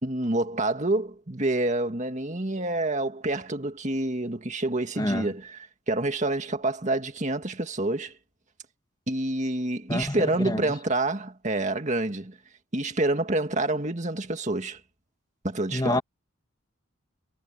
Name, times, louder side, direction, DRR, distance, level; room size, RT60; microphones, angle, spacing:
voice 1, 0.0-5.6 5.9-8.1 9.1-12.4 12.7-14.8 15.4-16.0, right 2 dB, 35° right, 2.0 m, -27 dB
voice 2, 5.0-5.3 9.9-10.7 15.7-16.0, left 1 dB, 20° left, 1.6 m, -27 dB
head